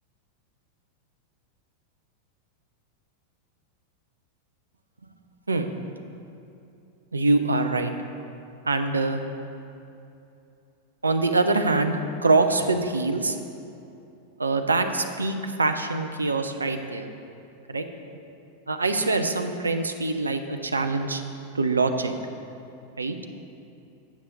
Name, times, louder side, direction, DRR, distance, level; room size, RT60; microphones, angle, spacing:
voice 1, 7.1-7.9 8.6-9.2 11.0-13.4 14.4-17.1 17.7-17.8 18.7-21.2 21.5-22.1 23.0-23.2, right 3 dB, 80° right, 6 dB, 0.5 m, -24 dB
8.6 x 7.2 x 3.9 m, 2.7 s
figure-of-eight pair, 90°, 0 cm